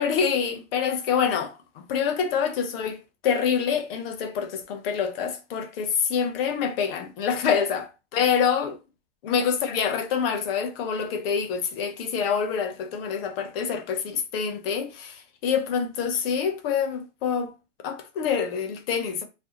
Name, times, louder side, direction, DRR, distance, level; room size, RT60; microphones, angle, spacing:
voice 1, 0.0-7.9 8.1-8.8 9.2-17.5 17.8-19.2, left 7 dB, 50° left, 0.7 m, -26 dB
2.5 x 2.1 x 2.8 m
hypercardioid pair, 135°, 36 cm